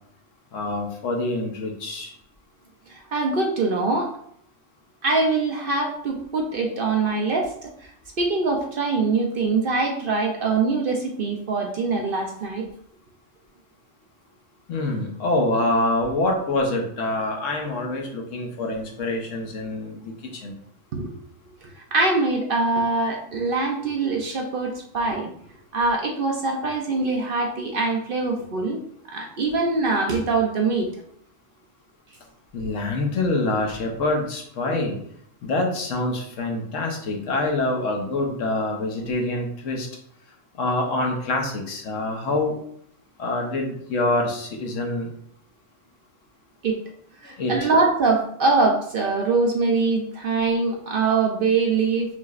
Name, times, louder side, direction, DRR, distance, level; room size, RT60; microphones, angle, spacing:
voice 1, 0.5-2.1 14.7-20.6 32.5-35.0 35.4-39.9 40.6-42.6 43.2-45.1 47.2-47.7, left 2 dB, 75° left, 1 dB, 1.2 m, -26 dB
voice 2, 2.9-4.1 5.0-7.7 8.2-12.7 20.9-21.1 21.9-25.3 25.7-28.8 29.1-30.9 46.6-46.8 47.2-52.1, right 3 dB, 55° right, 1 dB, 0.7 m, -23 dB
5.8 x 3.0 x 2.4 m, 0.66 s
omnidirectional pair, 1.3 m